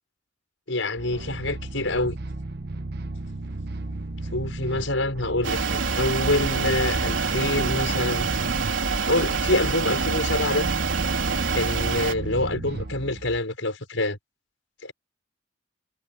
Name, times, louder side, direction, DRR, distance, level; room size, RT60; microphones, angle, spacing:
voice 1, 0.7-2.2 4.3-8.3 9.0-10.7 11.5-14.2 14.8-14.9, left 2 dB, 80° left, 6.0 m, -26 dB
sound 1, 1.0-13.4, right 2 dB, 55° right, 1.0 m, -34 dB
sound 2, 5.4-12.1, right 4 dB, 75° right, 3.8 m, -26 dB
head